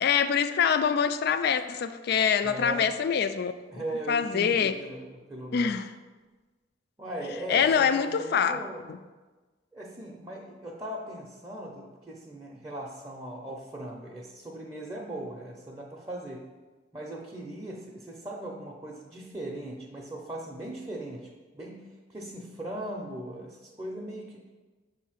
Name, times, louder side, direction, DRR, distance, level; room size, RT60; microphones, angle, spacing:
voice 1, 0.0-3.5 4.1-4.8 5.5-5.9 7.5-8.6 8.9-9.0, left 7 dB, 60° left, 11 dB, 0.3 m, -25 dB
voice 2, 2.4-2.9 3.7-5.8 7.0-8.8 9.7-16.5 16.9-24.5, right 1 dB, 15° right, -3 dB, 0.6 m, -39 dB
6.7 x 2.7 x 5.7 m, 1.3 s
head